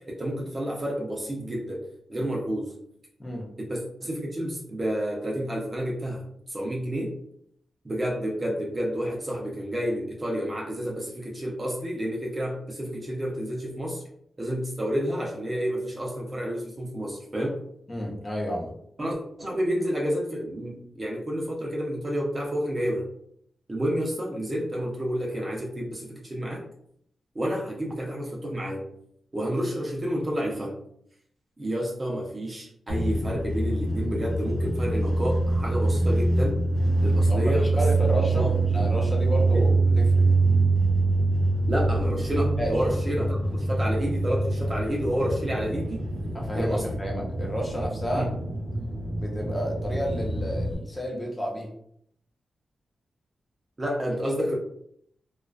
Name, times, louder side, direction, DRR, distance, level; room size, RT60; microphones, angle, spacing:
voice 1, 0.0-2.7 3.6-6.2 6.5-7.1 7.8-14.0 14.4-17.6 19.0-23.1 23.7-26.6 27.3-28.8 29.3-30.8 31.6-36.6 37.0-37.8 38.2-38.6 39.5-39.6 41.7-46.1 46.5-46.9 48.1-48.3 53.8-54.6, equal, 30° right, -2 dB, 0.5 m, -30 dB
voice 2, 17.9-18.7 37.3-38.5 38.7-40.2 42.6-42.7 46.3-48.3 49.2-51.7, equal, 20° left, -1 dB, 0.7 m, -31 dB
sound 1, 32.9-50.7, right 2 dB, 90° right, 0.6 m, -25 dB
2.4 x 2.3 x 2.3 m, 0.68 s
wide cardioid pair, 100°, 0 cm